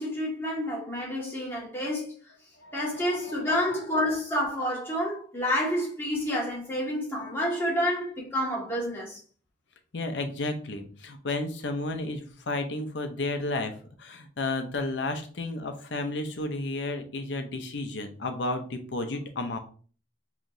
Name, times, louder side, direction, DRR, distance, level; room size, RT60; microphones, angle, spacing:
voice 1, 0.0-2.1 2.7-9.2, equal, 15° left, 1.7 m, -29 dB
voice 2, 2.6-3.7 9.9-13.7 14.0-19.6, left 2 dB, 80° left, 0.7 m, -32 dB
4.8 x 3.2 x 2.7 m
head